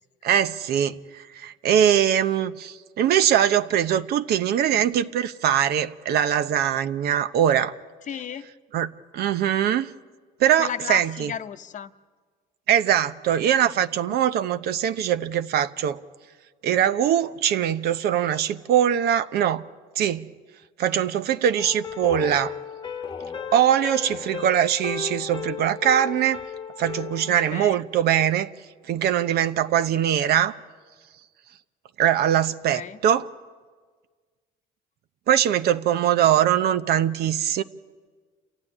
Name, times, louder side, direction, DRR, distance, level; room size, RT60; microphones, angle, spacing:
voice 1, 0.2-7.7 8.7-8.9 9.1-9.9 10.4-11.3 12.7-16.0 16.6-19.6 20.0-20.3 20.8-22.5 23.5-26.4 26.8-28.5 28.9-30.5 32.0-33.2 35.3-37.6, right 10 dB, 70° right, 0.9 m, -22 dB
voice 2, 8.1-8.5 10.6-11.9 14.1-14.2 27.2-27.8 32.7-33.0, left 8 dB, 50° left, 0.9 m, -34 dB
sound 1, 21.6-27.6, left 6 dB, 30° left, 1.0 m, -35 dB
28.5 x 15.0 x 9.9 m
cardioid pair, 110°, 17 cm